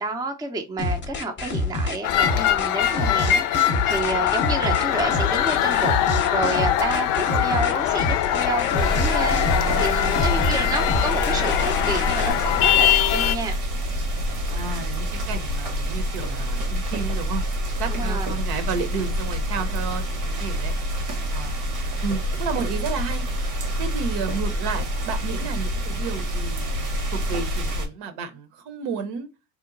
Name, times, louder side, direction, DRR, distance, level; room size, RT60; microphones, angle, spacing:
voice 1, 0.0-13.6 17.9-18.3, right 2 dB, 10° right, 0.5 m, -30 dB
sound 1, 0.8-12.3, left 2 dB, 25° left, 0.7 m, -27 dB
sound 2, 2.0-13.4, left 11 dB, 65° left, 0.5 m, -22 dB
sound 3, 8.8-27.9, equal, 85° right, 1.4 m, -27 dB
voice 2, 9.3-10.4 14.5-17.4 17.8-20.7 21.3-21.6 22.0-23.3 23.8-26.7 27.1-29.3, right 5 dB, 60° right, 0.9 m, -32 dB
3.0 x 2.1 x 3.8 m
supercardioid pair, 95°, 44 cm